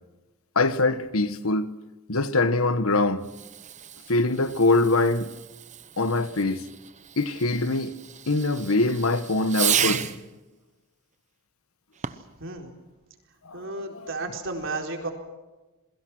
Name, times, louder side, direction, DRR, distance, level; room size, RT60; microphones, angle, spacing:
voice 1, 0.5-1.7 2.1-3.2 4.1-5.3 6.0-6.6 7.2-7.9 8.3-10.1 13.5-14.1, left 2 dB, 80° left, 1.3 m, -23 dB
Fireworks, 3.2-10.3 11.9-12.4, right 9 dB, 35° right, 0.9 m, -33 dB
voice 2, 12.4-12.7 13.5-15.1, right 2 dB, 60° right, 4.2 m, -33 dB
28.5 x 22.0 x 6.1 m
head